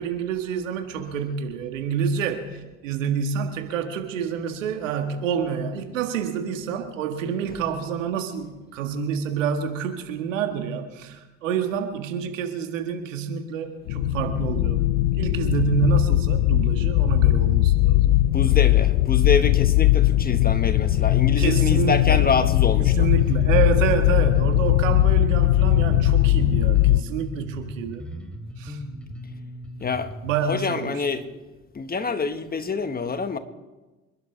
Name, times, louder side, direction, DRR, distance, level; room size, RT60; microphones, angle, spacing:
voice 1, 0.0-14.8 15.2-18.2 21.4-22.2 22.8-28.1 28.6-28.8 30.2-31.0, right 7 dB, 80° right, 6 dB, 1.7 m, -28 dB
sound 1, 13.9-27.0, left 16 dB, 65° left, 0.7 m, -19 dB
voice 2, 18.3-23.1 29.8-30.1 30.5-31.3 31.7-33.4, left 4 dB, 25° left, 9 dB, 1.5 m, -26 dB
Bass guitar, 23.2-30.4, equal, 5° left, 3.7 m, -38 dB
27.5 x 11.5 x 3.4 m, 1.1 s
hypercardioid pair, 65°, 38 cm